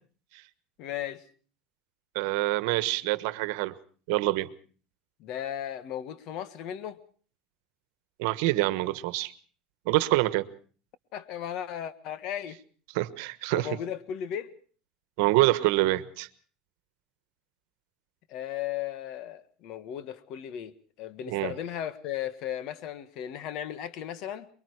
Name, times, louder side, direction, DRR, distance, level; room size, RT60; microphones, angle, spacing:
voice 1, 0.8-1.2 5.2-7.0 11.1-12.6 13.5-14.5 18.3-20.7 21.0-24.5, left 10 dB, 55° left, 14 dB, 1.5 m, -36 dB
voice 2, 2.1-3.7 4.1-4.5 8.2-9.3 9.9-10.4 12.9-13.7 15.2-16.3 21.3-21.5, right 18 dB, 75° right, 14 dB, 1.2 m, -26 dB
24.0 x 22.5 x 4.8 m, 0.43 s
supercardioid pair, 130°, 0 cm